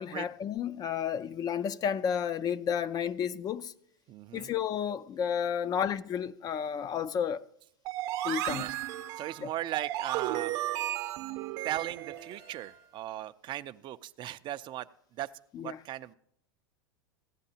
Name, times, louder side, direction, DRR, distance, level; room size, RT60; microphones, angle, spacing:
voice 1, 0.0-3.7 4.3-7.4 8.2-8.7 9.4-9.5 15.5-15.8, left 8 dB, 30° left, 0.4 m, -32 dB
voice 2, 4.1-4.5 8.5-8.7 9.2-10.5 11.6-14.9 15.1-15.3 15.6-16.1, right 13 dB, 40° right, 0.4 m, -37 dB
sound 1, 7.8-12.8, right 14 dB, 55° right, 0.8 m, -35 dB
15.5 x 9.8 x 2.8 m
hypercardioid pair, 110°, 13 cm